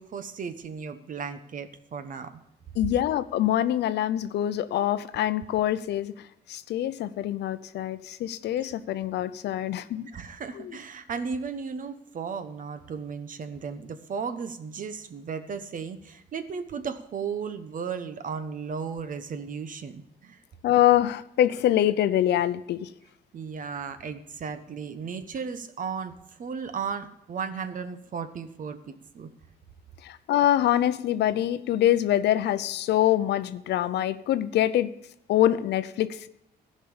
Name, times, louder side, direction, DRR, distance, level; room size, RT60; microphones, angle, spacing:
voice 1, 0.0-2.3 10.1-20.4 23.3-29.3, right 6 dB, 50° right, 10 dB, 1.0 m, -35 dB
voice 2, 2.8-6.1 6.5-10.1 10.5-10.7 20.6-22.9 30.0-34.9 35.3-36.3, left 12 dB, 85° left, 14 dB, 0.6 m, -25 dB
14.5 x 5.4 x 7.0 m, 0.81 s
cardioid pair, 105°, 17 cm